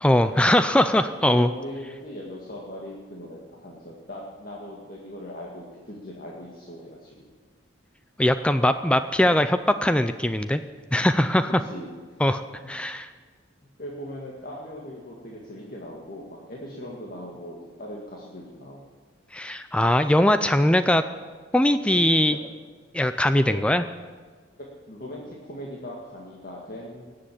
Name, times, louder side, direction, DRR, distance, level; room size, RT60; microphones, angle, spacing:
voice 1, 0.0-1.5 8.2-10.6 10.9-11.6 12.2-12.4 12.7-13.1 19.3-21.0 21.5-22.4 22.9-23.8, left 1 dB, 5° left, 10 dB, 0.3 m, -21 dB
voice 2, 1.2-7.3 9.3-9.5 11.6-11.9 13.1-13.2 13.8-18.8 21.9-22.4 23.5-23.6 24.6-27.0, left 1 dB, 45° left, -3 dB, 1.9 m, -39 dB
19.0 x 7.7 x 8.6 m, 1.5 s
head